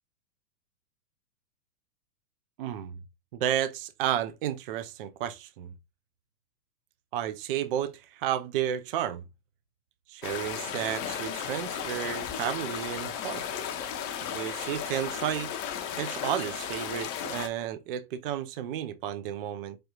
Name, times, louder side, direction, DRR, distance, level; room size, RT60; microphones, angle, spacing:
voice 1, 2.6-3.0 3.3-5.7 7.1-9.2 10.1-13.4 14.3-15.5 16.0-19.8, right 10 dB, 40° right, 0.4 m, -32 dB
sound 1, 10.2-17.5, left 8 dB, 30° left, 0.7 m, -35 dB
4.9 x 2.3 x 2.8 m
hypercardioid pair, 110°, 48 cm